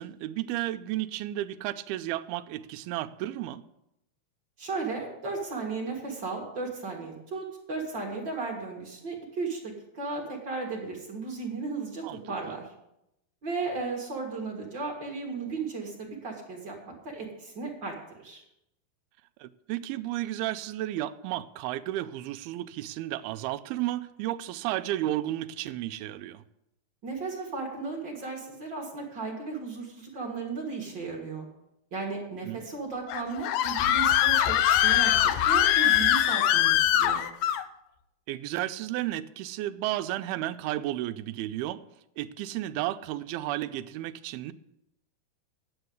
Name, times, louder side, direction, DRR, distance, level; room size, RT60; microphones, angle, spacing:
voice 1, 0.0-3.7 12.0-12.2 12.5-12.6 19.4-26.4 32.4-32.7 38.3-41.8 42.2-44.5, right 14 dB, 85° right, 10 dB, 2.4 m, -33 dB
voice 2, 4.6-12.7 13.4-18.0 18.2-18.4 27.0-31.5 31.9-37.2, right 4 dB, 40° right, -1 dB, 1.8 m, -35 dB
Screaming, 33.1-37.6, left 12 dB, 90° left, 1.8 m, -22 dB
9.8 x 7.8 x 8.0 m, 0.84 s
omnidirectional pair, 4.6 m